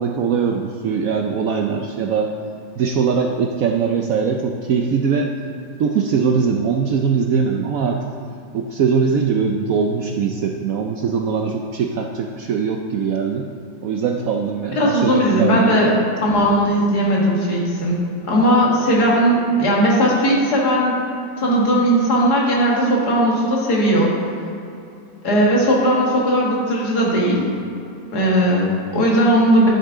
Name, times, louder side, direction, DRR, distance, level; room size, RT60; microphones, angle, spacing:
voice 1, 0.0-2.4 2.8-5.4 5.8-8.1 8.5-13.5 13.8-15.8, right 6 dB, 70° right, 2 dB, 0.8 m, -21 dB
voice 2, 14.8-15.9 16.2-18.0 18.3-21.0 21.4-24.1 25.2-27.5 28.1-29.7, equal, 60° left, -3 dB, 2.3 m, -17 dB
11.0 x 7.4 x 3.6 m, 2.6 s
omnidirectional pair, 2.0 m